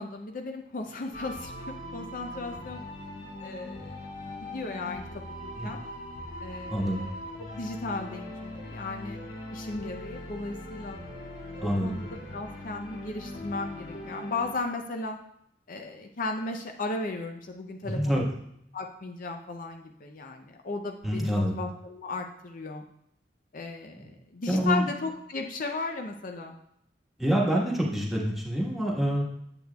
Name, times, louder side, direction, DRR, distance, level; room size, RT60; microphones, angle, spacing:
voice 1, 0.0-2.9 3.4-4.0 4.3-5.0 5.4-5.8 6.4-9.2 9.5-11.0 11.6-15.2 15.7-18.2 18.7-22.8 23.5-26.6, left 3 dB, 50° left, 4 dB, 0.6 m, -36 dB
sound 1, 1.1-14.5, left 1 dB, 90° left, 2.7 m, -41 dB
voice 2, 6.7-7.0 11.6-12.0 17.8-18.2 21.0-21.5 24.5-24.9 27.2-29.2, equal, ahead, -3 dB, 1.4 m, -26 dB
8.9 x 7.9 x 2.3 m, 0.73 s
head